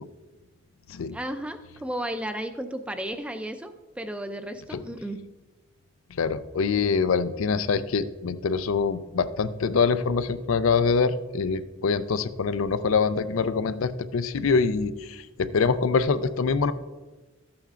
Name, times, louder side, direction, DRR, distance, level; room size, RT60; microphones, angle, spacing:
voice 1, 1.1-5.3, right 1 dB, 5° right, 8 dB, 0.4 m, -34 dB
voice 2, 6.2-16.7, left 5 dB, 80° left, 13 dB, 0.5 m, -24 dB
13.0 x 8.6 x 2.5 m, 1.2 s
head